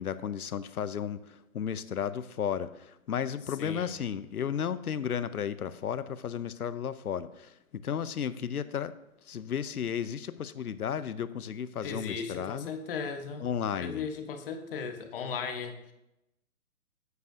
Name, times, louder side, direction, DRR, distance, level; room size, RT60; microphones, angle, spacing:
voice 1, 0.0-8.9 9.3-12.7 13.4-14.1, left 8 dB, 85° left, 15 dB, 0.7 m, -34 dB
voice 2, 3.6-3.9 11.8-13.5 13.7-15.9, left 5 dB, 40° left, 6 dB, 1.0 m, -37 dB
9.5 x 8.1 x 2.7 m, 0.87 s
figure-of-eight pair, 135°, 43 cm